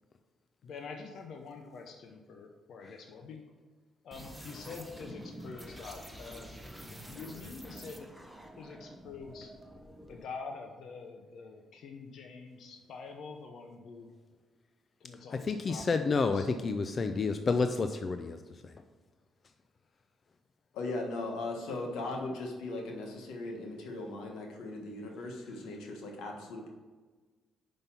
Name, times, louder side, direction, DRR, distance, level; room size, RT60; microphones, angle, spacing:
voice 1, 0.6-3.4 4.0-8.1 8.6-9.5 10.1-14.1 15.0-16.5, left 4 dB, 70° left, 3 dB, 0.8 m, -46 dB
sound 1, 4.1-10.3, equal, ahead, 1.0 m, -48 dB
voice 2, 15.3-18.4 18.6-18.7, left 4 dB, 40° left, 8 dB, 0.4 m, -30 dB
voice 3, 20.7-26.7, left 2 dB, 90° left, 1 dB, 1.4 m, -38 dB
5.5 x 5.3 x 5.9 m, 1.4 s
cardioid pair, 90°, 0 cm